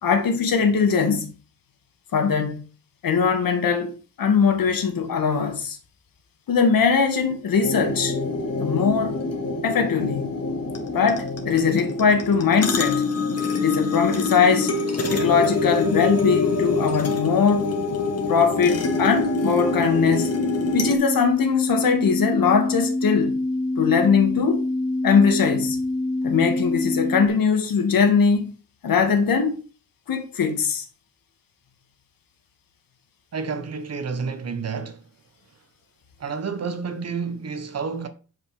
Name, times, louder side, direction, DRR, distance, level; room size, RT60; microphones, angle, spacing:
voice 1, 0.0-1.3 2.1-2.6 3.0-3.9 4.2-5.8 6.5-8.1 8.6-9.2 9.6-10.3 10.9-13.0 13.5-14.7 15.1-17.7 18.3-20.3 20.7-23.4 23.8-24.7 25.0-25.8 26.2-28.5 28.8-29.6 30.1-30.9, left 6 dB, 75° left, 2.2 m, -21 dB
sound 1, 7.6-20.9, left 3 dB, 45° left, 2.2 m, -25 dB
sound 2, 20.7-27.3, left 2 dB, 5° right, 2.6 m, -25 dB
voice 2, 33.3-35.0 36.2-38.1, right 5 dB, 45° right, 1.4 m, -30 dB
9.7 x 5.5 x 5.8 m
wide cardioid pair, 160°, 35 cm